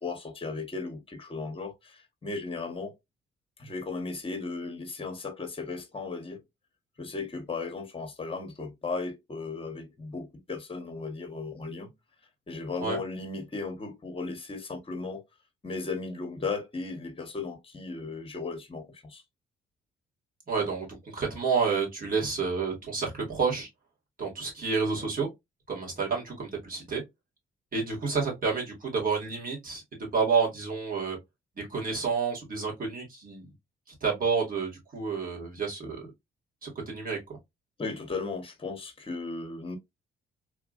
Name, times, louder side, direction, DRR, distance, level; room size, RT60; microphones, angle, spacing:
voice 1, 0.0-2.9 3.6-6.4 7.0-11.9 12.5-15.2 15.6-19.2 37.8-39.8, left 4 dB, 25° left, 1.1 m, -36 dB
voice 2, 20.5-23.7 24.2-25.3 25.7-27.0 27.7-29.8 30.1-31.2 31.6-33.5 34.0-36.1 36.6-37.2, right 5 dB, 45° right, 2.0 m, -29 dB
3.5 x 2.5 x 2.4 m
cardioid pair, 90°, 20 cm